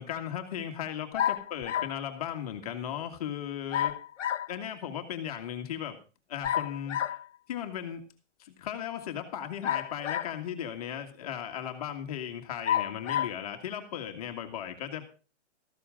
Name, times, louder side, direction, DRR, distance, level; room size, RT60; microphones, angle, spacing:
voice 1, 0.0-4.0 4.5-6.0 6.3-7.2 7.5-8.0 8.4-15.1, left 9 dB, 30° left, 5 dB, 1.8 m, -36 dB
sound 1, 1.2-2.0 3.7-4.5 6.4-7.2 9.6-10.5 11.2-11.3 12.6-13.4, left 10 dB, 80° left, 1.0 m, -30 dB
14.0 x 12.5 x 3.8 m, 0.34 s
hypercardioid pair, 175°, 36 cm